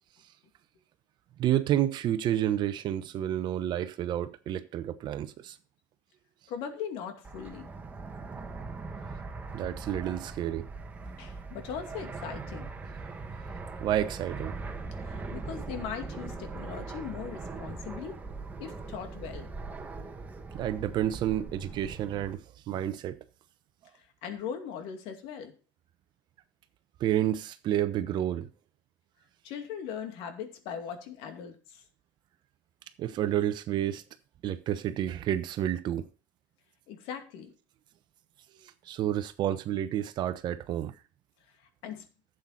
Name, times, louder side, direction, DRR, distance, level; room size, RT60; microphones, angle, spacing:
voice 1, 1.4-5.6 9.5-10.7 13.8-14.6 20.5-23.2 27.0-28.5 33.0-34.0 34.4-36.1 38.6-40.9, right 11 dB, 45° right, 0.9 m, -30 dB
voice 2, 6.5-7.7 11.2-12.7 15.0-18.2 18.6-19.5 23.9-25.6 29.4-31.8 36.9-37.5 41.5-42.0, left 7 dB, 60° left, 2.4 m, -40 dB
Fixed-wing aircraft airplane, 7.2-22.4, right 3 dB, 15° right, 1.8 m, -40 dB
11.5 x 8.0 x 4.1 m
supercardioid pair, 115°, 11 cm